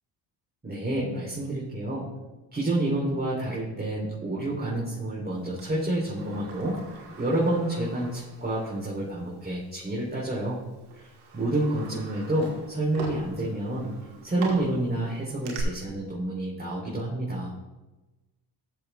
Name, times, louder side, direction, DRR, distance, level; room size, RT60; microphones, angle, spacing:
voice 1, 0.6-2.1 2.5-6.7 7.2-10.6 10.9-13.9 14.2-17.5, right 1 dB, 20° right, -6 dB, 3.4 m, -29 dB
Sliding door, 5.6-8.8 9.2-9.3 10.2-10.4 10.9-15.6, right 4 dB, 85° right, 1.9 m, -42 dB
13.0 x 6.9 x 3.5 m, 1.1 s
supercardioid pair, 55°, 47 cm